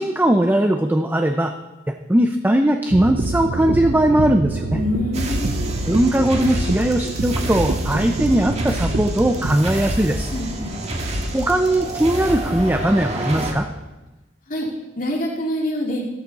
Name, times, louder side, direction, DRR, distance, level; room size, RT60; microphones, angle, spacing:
voice 1, 0.0-1.5 2.1-4.8 5.9-10.3 11.3-13.7, right 1 dB, 10° right, 6 dB, 0.5 m, -19 dB
sound 1, 2.9-9.6, right 3 dB, 65° right, 0.6 m, -26 dB
voice 2, 4.7-5.5 10.3-10.8 14.5-14.7 15.0-16.0, left 1 dB, 45° left, -1 dB, 2.5 m, -25 dB
sound 2, 5.1-13.5, right 1 dB, 35° right, 1.7 m, -27 dB
14.5 x 13.0 x 4.1 m, 1.1 s
head